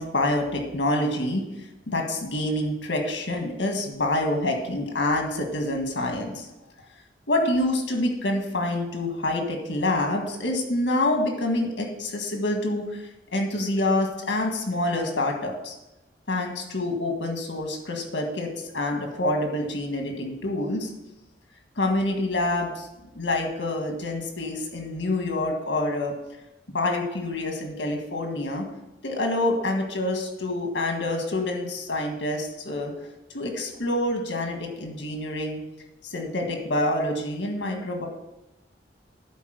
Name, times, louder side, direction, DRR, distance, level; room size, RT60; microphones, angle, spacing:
voice 1, 0.0-1.4 1.9-6.5 7.3-13.0 13.3-15.7 16.3-20.9 21.8-22.9 23.1-26.1 26.7-28.6 29.0-32.9 33.3-35.6 36.0-38.1, left 1 dB, 80° left, 2 dB, 1.7 m, -27 dB
10.5 x 4.2 x 6.6 m, 0.95 s
head